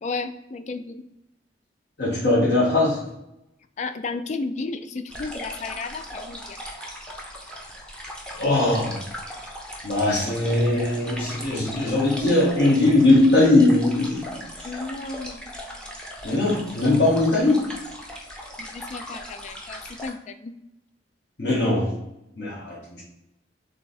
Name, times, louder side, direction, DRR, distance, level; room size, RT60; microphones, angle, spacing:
voice 1, 0.0-1.0 3.8-6.6 14.6-15.6 18.6-20.5 21.8-21.9, left 3 dB, 40° left, 9 dB, 0.3 m, -33 dB
voice 2, 2.0-3.0 8.4-9.0 9.8-14.7 16.2-17.6 21.4-21.9 22.4-23.0, left 2 dB, 60° left, -5 dB, 1.1 m, -20 dB
sound 1, 5.1-20.1, equal, 5° left, 0.6 m, -38 dB
3.4 x 3.4 x 4.1 m, 0.87 s
head